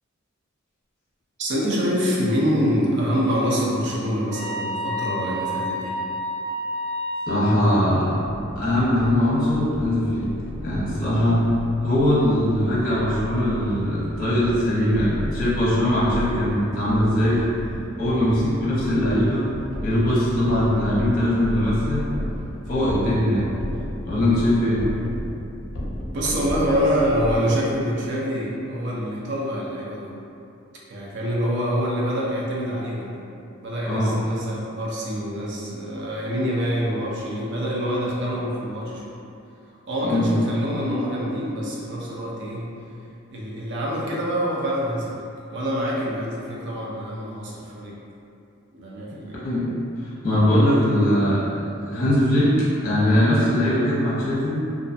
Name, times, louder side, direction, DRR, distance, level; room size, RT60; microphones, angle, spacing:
voice 1, 1.4-6.0 26.1-30.2 30.9-33.2 33.6-39.1 39.9-42.7 43.3-48.0 48.7-49.4, equal, 60° right, -5 dB, 0.5 m, -26 dB
sound 1, 4.3-7.6, equal, 75° right, 1.3 m, -29 dB
voice 2, 7.3-8.2 8.6-10.2 10.6-11.5 11.8-17.4 17.9-19.4 19.8-22.0 22.7-23.4 24.0-24.8 33.8-34.1 40.0-40.3 49.4-49.7 50.0-51.5 51.8-54.6, left 1 dB, 45° left, -8 dB, 0.8 m, -21 dB
sound 2, 8.2-27.4, equal, 75° left, 0.5 m, -33 dB
2.4 x 2.3 x 2.5 m, 2.6 s
head